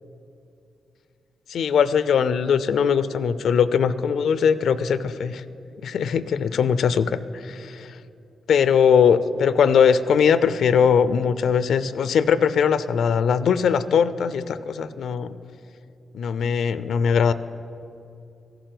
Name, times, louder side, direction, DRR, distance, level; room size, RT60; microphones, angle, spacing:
voice 1, 1.5-5.4 5.8-8.0 8.5-15.4 16.1-17.3, left 7 dB, 80° left, 14 dB, 0.4 m, -20 dB
15.0 x 6.8 x 7.7 m, 2.7 s
cardioid pair, 95°, 0 cm